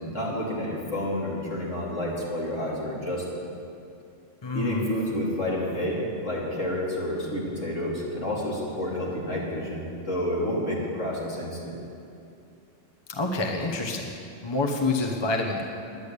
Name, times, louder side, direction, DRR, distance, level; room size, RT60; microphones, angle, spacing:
voice 1, 0.0-3.5 4.5-11.8, left 1 dB, 75° left, -5 dB, 3.2 m, -29 dB
voice 2, 4.4-4.9 13.1-14.1 14.4-15.7, left 3 dB, 20° left, 2 dB, 1.0 m, -27 dB
10.5 x 10.5 x 8.3 m, 2.6 s
omnidirectional pair, 1.3 m